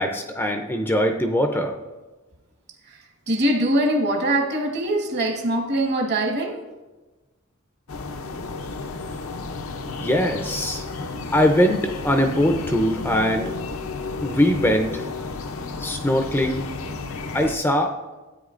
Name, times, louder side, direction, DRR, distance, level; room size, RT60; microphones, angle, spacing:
voice 1, 0.0-1.8 10.0-10.8 11.3-13.5 14.2-15.1 15.8-16.6 17.3-17.9, equal, 10° left, 4 dB, 0.5 m, -21 dB
voice 2, 2.8-6.6, right 1 dB, 50° right, 3 dB, 1.3 m, -23 dB
sound 1, 7.9-17.6, left 3 dB, 70° left, 0.6 m, -32 dB
12.5 x 8.7 x 2.5 m, 1.2 s
head